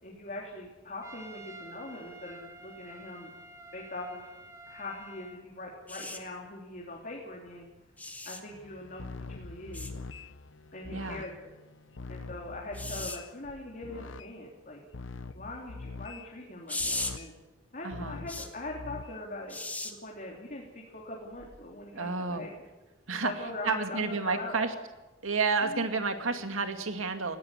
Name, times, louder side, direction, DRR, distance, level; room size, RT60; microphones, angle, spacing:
voice 1, 0.0-3.3 3.7-4.3 4.7-7.7 8.2-9.9 10.7-11.5 12.1-14.8 15.3-17.3 17.7-19.6 19.8-22.5 23.2-24.7 25.6-25.9, left 2 dB, 40° left, -2 dB, 3.4 m, -42 dB
Trumpet, 1.0-5.4, right 2 dB, 15° right, 1.4 m, -49 dB
sound 1, 5.9-6.2 8.0-8.4 9.7-9.9 12.7-13.2 16.7-17.1 18.3-18.5 19.5-19.9 21.4-21.6, left 2 dB, 10° left, 1.7 m, -36 dB
sound 2, 8.5-14.3 14.9-16.3 16.8-17.3 17.9-19.2, left 3 dB, 70° left, 0.8 m, -44 dB
voice 2, 10.9-11.2 17.8-18.2 21.9-22.4 23.1-23.3 23.6-24.7 25.2-27.4, right 4 dB, 90° right, 7 dB, 2.3 m, -30 dB
19.0 x 16.5 x 9.9 m, 1.1 s
head